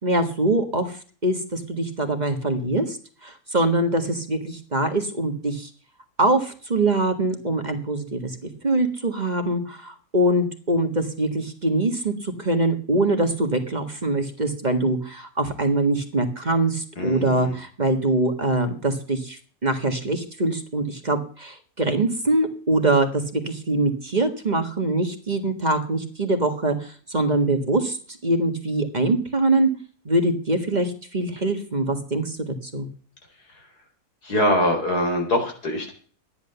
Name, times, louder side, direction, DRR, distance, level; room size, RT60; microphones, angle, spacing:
voice 1, 0.0-3.0 3.2-5.7 6.2-28.0 28.2-29.7 30.0-32.9, right 2 dB, 30° right, 6 dB, 1.7 m, -23 dB
voice 2, 17.0-17.5 34.2-35.9, left 1 dB, 90° left, 2 dB, 4.8 m, -23 dB
13.0 x 10.5 x 6.9 m, 0.43 s
omnidirectional pair, 1.6 m